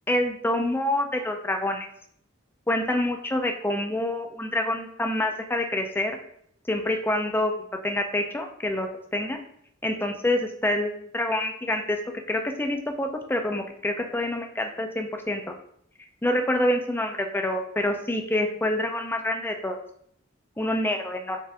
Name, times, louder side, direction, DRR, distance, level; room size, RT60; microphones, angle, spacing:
voice 1, 0.1-1.9 2.7-6.2 6.7-7.5 7.8-9.4 9.8-12.0 12.3-15.5 16.2-19.8 20.6-21.4, left 1 dB, 10° left, 4 dB, 0.5 m, -27 dB
5.4 x 2.6 x 3.4 m, 0.66 s
head